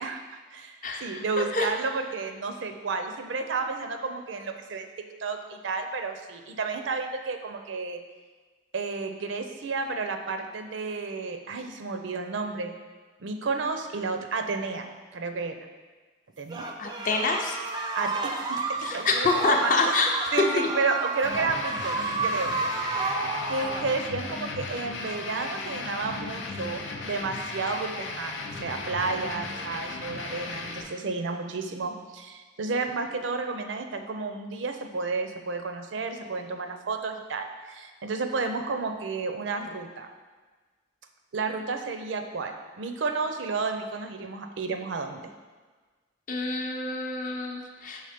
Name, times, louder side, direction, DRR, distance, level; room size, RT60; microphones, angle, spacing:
voice 1, 0.0-8.0 8.7-12.7 13.2-14.9 15.1-15.6 16.4-16.7 17.9-19.9 20.3-22.5 23.5-40.1 41.3-45.3, right 4 dB, 85° right, 6 dB, 0.5 m, -32 dB
sound 1, 16.5-23.9, right 3 dB, 20° right, 0.4 m, -31 dB
voice 2, 16.8-17.6 18.8-20.1 20.6-20.7 46.3-48.0, left 3 dB, 45° left, 2 dB, 0.6 m, -26 dB
sound 2, 21.2-30.8, left 3 dB, 90° left, 0.6 m, -36 dB
5.6 x 3.5 x 5.0 m, 1.4 s
head